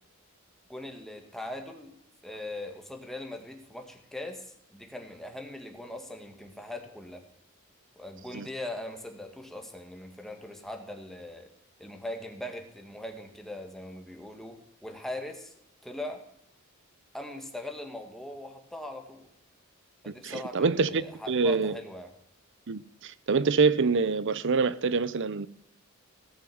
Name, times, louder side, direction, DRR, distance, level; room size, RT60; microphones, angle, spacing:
voice 1, 0.7-2.0 2.2-7.2 7.9-11.5 11.8-15.5 15.8-16.2 17.1-19.3 20.0-22.1, left 1 dB, ahead, 1.7 m, -40 dB
voice 2, 20.1-21.8 22.7-25.5, right 4 dB, 60° right, 0.7 m, -26 dB
17.0 x 6.3 x 7.9 m
head